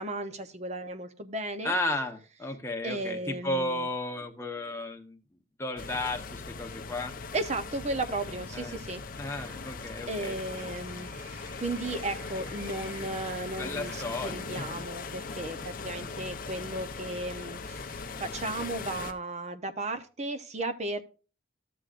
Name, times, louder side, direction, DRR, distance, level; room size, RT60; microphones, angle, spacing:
voice 1, 0.0-1.7 2.8-3.9 7.3-9.0 10.1-21.0, right 2 dB, 35° right, 10 dB, 0.7 m, -35 dB
voice 2, 1.6-5.2 5.6-7.2 8.5-8.8 9.2-10.4 13.5-14.5 15.9-16.2, left 1 dB, 15° left, 3 dB, 0.9 m, -34 dB
sound 1, 5.8-19.1, left 4 dB, 45° left, 0.7 m, -40 dB
Applause, 9.4-15.2, right 1 dB, 70° right, 3.8 m, -52 dB
12.5 x 7.5 x 2.5 m, 0.35 s
head